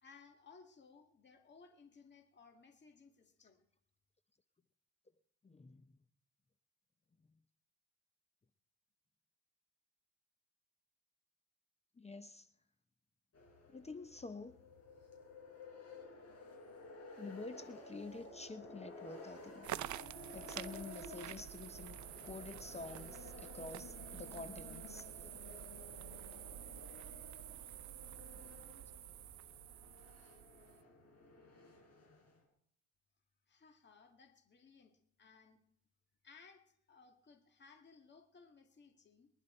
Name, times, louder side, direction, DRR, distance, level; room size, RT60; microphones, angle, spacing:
voice 1, 0.0-3.6 33.5-34.9 35.2-35.6 36.2-39.3, left 5 dB, 35° left, 4 dB, 2.0 m, -61 dB
voice 2, 5.4-5.9 12.0-12.5 13.7-14.6 17.2-19.7 20.3-25.1, left 3 dB, 20° left, 11 dB, 0.8 m, -49 dB
sound 1, 13.3-32.4, left 3 dB, 55° left, 5.7 m, -54 dB
sound 2, 19.6-30.8, right 13 dB, 70° right, 0.7 m, -49 dB
23.5 x 11.0 x 4.4 m, 0.68 s
cardioid pair, 90°, 30 cm